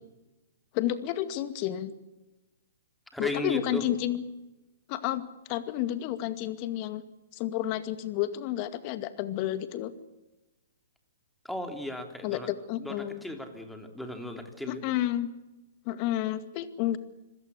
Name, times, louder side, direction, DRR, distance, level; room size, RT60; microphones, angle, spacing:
voice 1, 0.7-1.9 3.2-4.2 4.9-5.2 5.5-7.0 7.3-9.9 12.2-13.2 14.7-15.3 15.9-17.0, left 13 dB, 40° left, 11 dB, 2.2 m, -30 dB
voice 2, 3.1-3.9 11.4-12.5 12.7-14.8, left 1 dB, ahead, 5 dB, 3.4 m, -36 dB
26.0 x 17.0 x 8.3 m, 1.0 s
hypercardioid pair, 125°, 0 cm